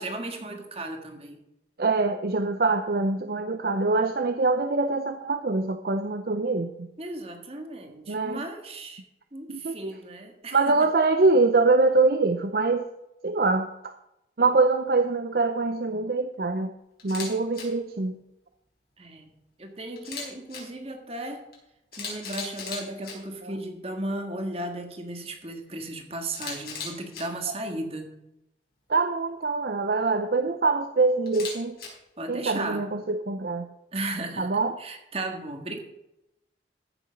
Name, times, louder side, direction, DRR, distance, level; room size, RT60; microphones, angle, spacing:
voice 1, 0.0-1.4 7.0-9.0 9.3-10.8 19.0-21.4 21.9-28.1 32.2-32.9 33.9-34.5 34.8-35.8, right 2 dB, 30° right, 4 dB, 1.7 m, -35 dB
voice 2, 1.8-6.9 8.1-8.4 9.5-10.0 10.5-12.9 13.2-13.9 14.4-16.7 17.0-18.2 23.4-23.5 27.5-27.6 28.9-31.8 32.3-33.7 34.4-34.8, right 3 dB, 55° right, 8 dB, 0.6 m, -24 dB
Camera, 17.0-17.3 17.5-17.6 20.0-20.6 21.5-21.6 21.9-23.1 26.3-27.2 31.3-31.9, left 5 dB, 55° left, 4.3 m, -36 dB
14.5 x 6.9 x 5.2 m, 0.87 s
head